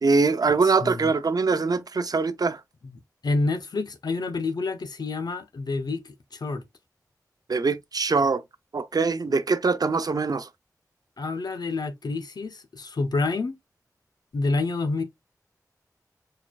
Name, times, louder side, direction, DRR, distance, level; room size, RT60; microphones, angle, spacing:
voice 1, 0.0-2.6 7.5-8.4 8.7-10.5, right 4 dB, 70° right, 0.7 m, -23 dB
voice 2, 0.6-1.1 2.8-6.6 11.2-13.6 14.3-15.0, left 3 dB, 85° left, 0.9 m, -28 dB
4.4 x 4.1 x 2.4 m
wide cardioid pair, 75°, 7 cm